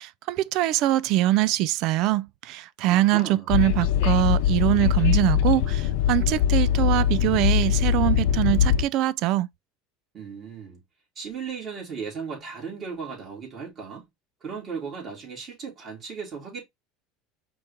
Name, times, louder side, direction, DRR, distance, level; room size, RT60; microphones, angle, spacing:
voice 1, 0.0-9.5, right 15 dB, 55° right, 0.4 m, -23 dB
voice 2, 2.9-3.5 10.1-10.8 11.1-14.1 14.4-16.6, right 5 dB, 35° right, 3.2 m, -36 dB
Train, 3.5-8.8, left 9 dB, 70° left, 0.5 m, -22 dB
5.2 x 2.9 x 3.5 m
supercardioid pair, 135°, 0 cm